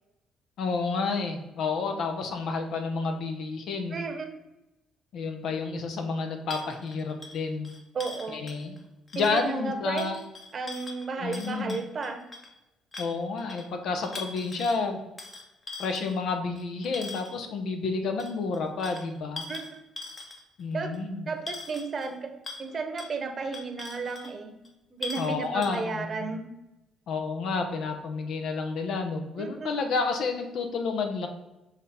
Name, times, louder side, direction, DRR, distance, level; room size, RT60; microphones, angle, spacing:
voice 1, 0.6-4.0 5.1-7.7 8.3-8.8 9.1-10.2 11.2-11.8 13.0-15.0 15.8-19.4 20.6-21.3 25.2-26.3 27.1-31.3, left 4 dB, 70° left, 5 dB, 1.0 m, -30 dB
voice 2, 3.9-4.3 7.9-8.4 9.1-10.1 10.5-12.2 19.5-19.8 20.7-21.0 21.3-22.3 22.6-24.5 24.9-26.5 29.4-29.8, right 4 dB, 45° right, 5 dB, 1.0 m, -33 dB
sound 1, 6.5-8.8 9.1-9.5 10.0-12.5 12.9-13.7 14.0-14.8 15.2-17.4 18.2-20.6 20.9-21.0 21.5-22.1 22.4-22.7 23.0-23.1 23.5-24.3 24.6-24.7 25.0-25.3 25.6-25.8, left 3 dB, 35° left, 1.1 m, -41 dB
6.1 x 3.6 x 4.3 m, 0.96 s
cardioid pair, 90°, 0 cm